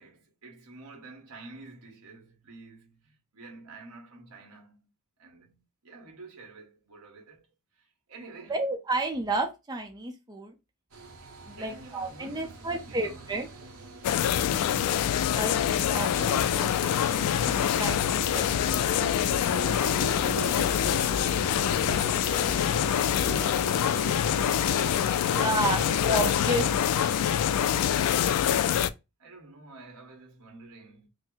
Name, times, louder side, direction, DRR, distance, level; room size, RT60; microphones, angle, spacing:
voice 1, 0.0-4.9 5.2-8.7 11.2-13.3 14.3-14.9 15.4-16.4 19.9-26.0 29.2-31.1, right 3 dB, 90° right, 1.4 m, -50 dB
voice 2, 8.5-10.5 11.4-13.5 15.4-15.5 15.9-18.9 25.3-27.1, right 1 dB, 20° right, 0.5 m, -32 dB
sound 1, 10.9-28.3, right 5 dB, 70° right, 0.8 m, -42 dB
sound 2, 14.0-28.9, left 9 dB, 90° left, 0.3 m, -25 dB
sound 3, 17.3-23.5, left 1 dB, 25° left, 0.6 m, -43 dB
3.9 x 2.1 x 3.8 m
head